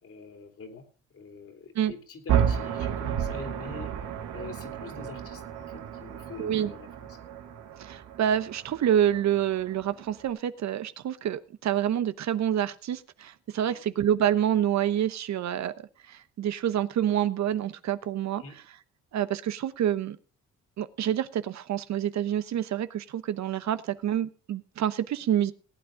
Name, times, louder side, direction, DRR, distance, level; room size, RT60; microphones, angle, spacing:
voice 1, 0.0-0.9 1.1-3.9 4.3-7.2 13.6-13.8 18.4-18.6, left 4 dB, 50° left, 6 dB, 3.3 m, -44 dB
sound 1, 2.3-10.3, right 9 dB, 85° right, 1.9 m, -32 dB
voice 2, 6.4-6.7 7.8-15.7 16.1-18.4 19.1-20.2 20.8-25.5, right 10 dB, 65° right, 13 dB, 1.0 m, -27 dB
18.5 x 8.8 x 3.7 m, 0.37 s
cardioid pair, 90°, 30 cm